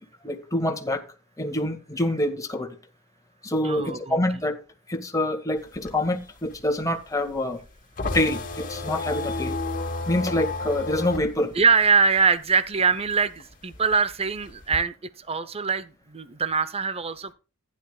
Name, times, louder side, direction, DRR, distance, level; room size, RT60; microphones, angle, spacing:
voice 1, 0.2-1.0 1.4-2.8 3.4-4.6 4.9-7.6 8.1-9.6 10.1-11.5, left 1 dB, 15° left, 2.0 m, -26 dB
voice 2, 3.6-4.2 11.6-17.3, right 5 dB, 25° right, 0.7 m, -23 dB
sound 1, 5.6-12.7 13.0-14.8, left 3 dB, 40° left, 2.2 m, -32 dB
15.0 x 10.5 x 2.4 m
head